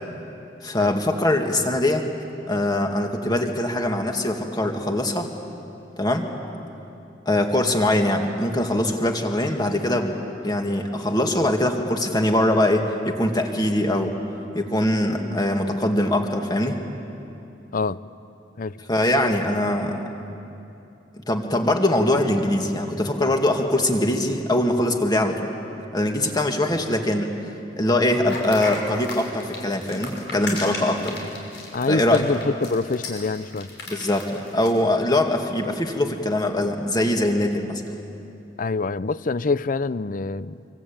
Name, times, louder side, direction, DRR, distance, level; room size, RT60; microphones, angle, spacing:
voice 1, 0.6-2.0 2.5-5.3 6.0-6.3 7.3-10.1 10.4-14.2 14.5-16.8 18.9-20.1 21.3-25.5 25.9-27.3 27.8-31.2 31.9-32.2 33.9-37.8, left 1 dB, 25° left, 3 dB, 2.2 m, -22 dB
sound 1, 28.3-34.8, left 3 dB, 75° left, 6.0 m, -35 dB
voice 2, 31.7-33.7 38.6-40.6, left 3 dB, 50° left, 16 dB, 0.6 m, -25 dB
25.5 x 24.5 x 8.8 m, 2.8 s
head